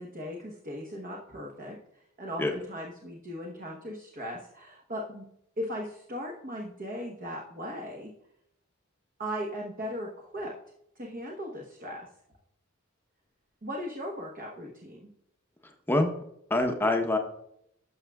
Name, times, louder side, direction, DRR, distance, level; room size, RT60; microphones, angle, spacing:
voice 1, 0.0-1.8 2.2-5.2 5.6-8.1 9.2-10.5 11.0-12.1 13.6-15.1, equal, 40° right, -1 dB, 1.0 m, -38 dB
voice 2, 15.6-16.1 16.5-17.2, left 2 dB, 10° left, 4 dB, 0.8 m, -26 dB
12.0 x 6.1 x 2.3 m, 0.74 s
head